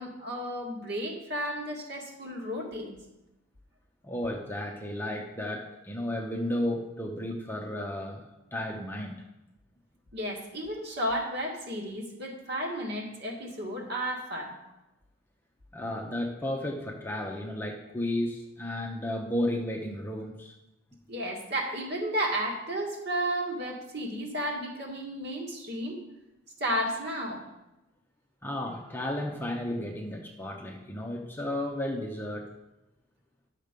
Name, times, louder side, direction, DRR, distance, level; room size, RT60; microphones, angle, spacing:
voice 1, 0.0-3.0 10.1-14.5 21.1-26.0 26.6-27.4, equal, 50° right, -1 dB, 2.0 m, -33 dB
voice 2, 4.0-8.2 8.5-9.2 15.7-20.5 28.4-32.5, left 1 dB, 10° left, 0 dB, 0.8 m, -33 dB
11.0 x 6.5 x 5.2 m, 0.95 s
head